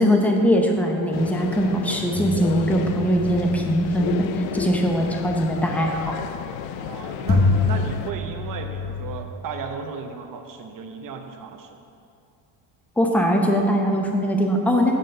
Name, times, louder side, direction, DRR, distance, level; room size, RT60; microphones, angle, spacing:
voice 1, 0.0-6.2 13.0-14.9, equal, 5° left, 1 dB, 0.7 m, -21 dB
sound 1, 1.1-8.1, left 9 dB, 70° left, 0.5 m, -32 dB
sound 2, 2.1-6.1 6.7-6.8 7.3-9.2, left 3 dB, 25° left, 1.3 m, -27 dB
voice 2, 6.8-11.8, right 6 dB, 40° right, 5 dB, 0.8 m, -35 dB
7.8 x 4.0 x 6.6 m, 2.5 s
cardioid pair, 125°, 49 cm